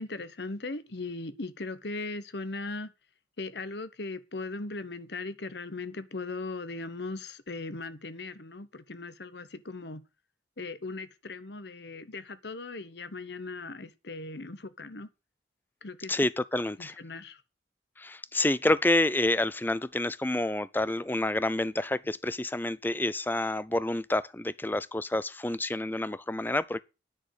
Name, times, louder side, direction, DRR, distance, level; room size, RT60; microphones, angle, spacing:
voice 1, 0.0-2.9 3.4-10.0 10.6-15.1 15.8-16.1 16.8-17.4, left 3 dB, 60° left, 1.1 m, -38 dB
voice 2, 16.1-17.0 18.0-26.8, left 1 dB, 10° left, 0.5 m, -28 dB
9.9 x 6.6 x 8.0 m
head